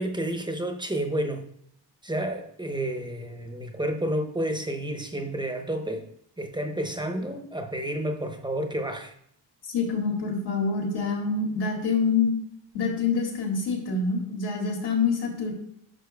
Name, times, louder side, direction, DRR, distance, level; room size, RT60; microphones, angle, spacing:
voice 1, 0.0-1.5 2.0-6.1 6.4-9.1, right 1 dB, 10° right, 4 dB, 0.9 m, -30 dB
voice 2, 9.7-12.3 12.7-15.5, left 4 dB, 70° left, 0 dB, 2.4 m, -26 dB
10.5 x 6.0 x 2.3 m, 0.72 s
cardioid pair, 105°, 42 cm